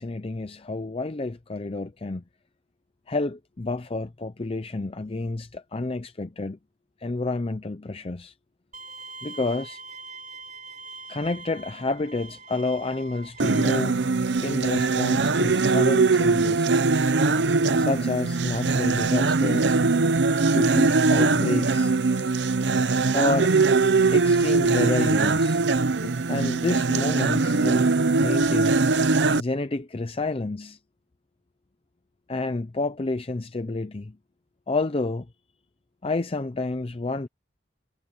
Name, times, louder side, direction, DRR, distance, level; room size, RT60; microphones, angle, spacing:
voice 1, 0.0-2.2 3.1-6.6 7.0-8.3 9.2-9.8 11.1-14.0 14.4-16.7 17.8-19.8 20.5-21.9 23.1-23.5 24.1-25.6 26.0-27.9 28.2-28.8 29.3-30.8 32.3-34.2 34.7-35.3 36.0-37.3, left 2 dB, 35° left, 0.6 m, -29 dB
Bowed string instrument, 8.7-13.8, right 3 dB, 45° right, 5.5 m, -42 dB
sound 1, 13.4-29.4, right 3 dB, 90° right, 0.8 m, -21 dB
head